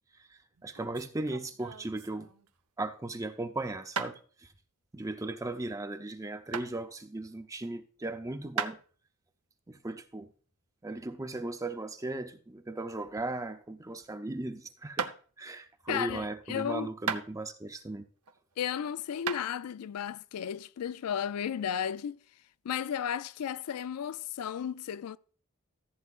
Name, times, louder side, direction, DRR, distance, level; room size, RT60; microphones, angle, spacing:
voice 1, 0.1-2.3 2.8-4.5 4.9-8.8 9.7-10.3 10.8-15.1 15.4-18.1, right 2 dB, 15° right, 0.5 m, -37 dB
sound 1, 0.5-2.6 4.0-4.1 6.5-6.7 8.6-8.8 12.0-13.4 13.7-14.1 15.0-15.2 17.1-17.7 18.2-18.7 19.3-19.4, right 6 dB, 85° right, 0.8 m, -36 dB
voice 2, 15.9-16.9 18.6-22.2 22.6-25.2, left 8 dB, 90° left, 0.4 m, -34 dB
14.5 x 7.9 x 2.4 m
head